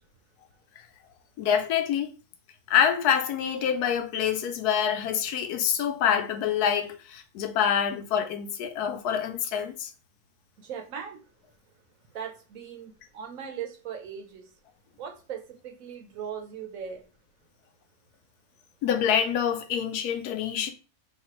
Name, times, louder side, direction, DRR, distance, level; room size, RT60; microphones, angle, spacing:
voice 1, 1.4-2.1 2.7-9.9 18.8-20.7, left 8 dB, 90° left, 1.1 m, -26 dB
voice 2, 10.6-11.2 12.1-14.5 15.0-17.0, right 7 dB, 65° right, 1.2 m, -39 dB
4.1 x 2.4 x 3.0 m
omnidirectional pair, 1.6 m